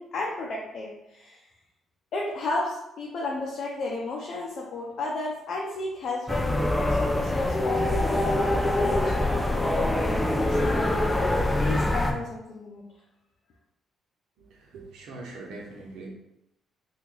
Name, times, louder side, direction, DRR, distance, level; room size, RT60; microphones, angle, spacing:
voice 1, 0.0-1.4 2.1-10.8 11.6-12.8, left 3 dB, 65° left, -3 dB, 0.6 m, -33 dB
sound 1, 6.3-12.1, left 1 dB, 10° left, 0.4 m, -24 dB
voice 2, 14.7-16.1, right 2 dB, 80° right, -2 dB, 0.9 m, -41 dB
2.9 x 2.5 x 3.8 m, 0.86 s
cardioid pair, 90°, 0 cm